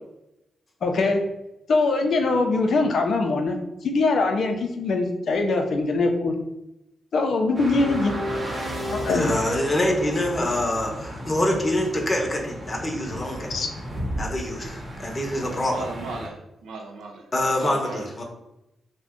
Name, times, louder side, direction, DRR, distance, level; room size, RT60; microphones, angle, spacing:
voice 1, 0.8-1.2 1.7-3.6 3.8-6.3 7.1-8.2 8.9-9.3 13.5-13.7, left 3 dB, 70° left, 4 dB, 0.5 m, -22 dB
sound 1, 7.5-16.3, equal, 35° right, 0.9 m, -35 dB
sound 2, 7.8-11.0, equal, ahead, 0.9 m, -35 dB
voice 2, 9.1-13.5 14.2-15.8 17.3-18.2, left 1 dB, 35° left, 1 dB, 0.8 m, -25 dB
voice 3, 15.4-17.2 17.6-18.2, right 3 dB, 85° right, 1 dB, 0.4 m, -36 dB
2.5 x 2.1 x 3.6 m, 0.89 s
supercardioid pair, 55°, 0 cm